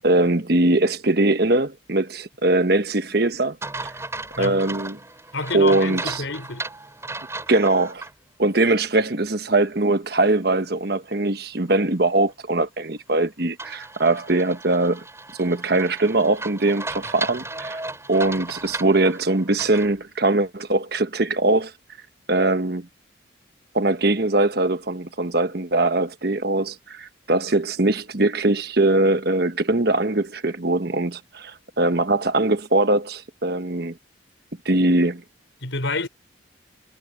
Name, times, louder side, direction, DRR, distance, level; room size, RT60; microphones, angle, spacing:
voice 1, 0.0-3.6 3.8-3.9 4.4-5.0 5.5-6.2 7.5-8.0 8.4-15.0 15.4-17.8 18.1-21.7 22.3-22.9 23.7-34.0 34.6-35.2, right 2 dB, 55° right, 1.3 m, -21 dB
sound 1, 3.6-8.1 8.6-8.7 13.6-19.9, right 2 dB, 15° right, 7.7 m, -35 dB
voice 2, 5.3-6.7 35.6-36.1, left 3 dB, 80° left, 4.6 m, -28 dB
head